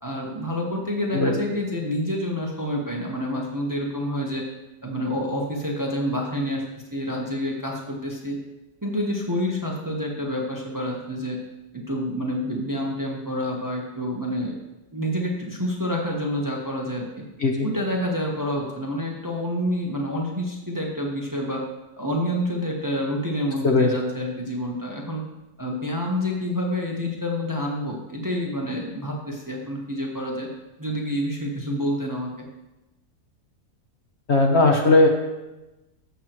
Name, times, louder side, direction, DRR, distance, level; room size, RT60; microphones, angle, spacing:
voice 1, 0.0-4.4 4.8-6.6 6.9-8.4 8.8-11.4 11.9-14.6 14.9-17.1 17.6-21.6 22.0-25.2 25.6-30.5 30.8-32.3, equal, 15° right, -1 dB, 1.0 m, -28 dB
voice 2, 34.3-35.1, left 2 dB, 50° left, 1 dB, 1.1 m, -17 dB
14.0 x 6.6 x 3.0 m, 1.0 s
omnidirectional pair, 1.6 m